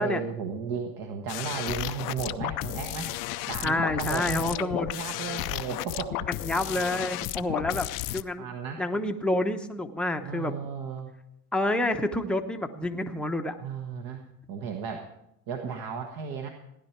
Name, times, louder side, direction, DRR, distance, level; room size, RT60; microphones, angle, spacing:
voice 1, 0.0-3.1 3.5-6.3 8.4-8.8 10.2-11.1 13.6-15.1 15.5-16.5, right 6 dB, 50° right, 4 dB, 1.5 m, -34 dB
sound 1, 1.3-8.2, left 17 dB, 45° left, 0.5 m, -33 dB
voice 2, 3.6-4.9 6.3-8.5 8.8-10.5 11.5-13.6, left 1 dB, ahead, 4 dB, 0.9 m, -28 dB
16.0 x 10.0 x 4.6 m, 0.83 s
supercardioid pair, 110°, 46 cm